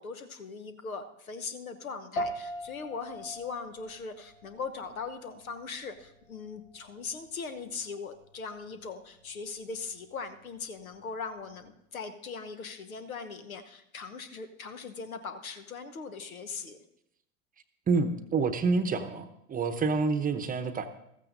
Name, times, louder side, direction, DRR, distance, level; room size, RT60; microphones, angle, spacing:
voice 1, 0.0-16.8, left 5 dB, 85° left, 9 dB, 1.0 m, -40 dB
sound 1, 2.2-11.7, equal, 70° left, 1.3 m, -43 dB
voice 2, 17.9-20.9, right 4 dB, 20° right, 9 dB, 0.8 m, -28 dB
15.0 x 14.0 x 2.7 m, 0.78 s
hypercardioid pair, 90°, 41 cm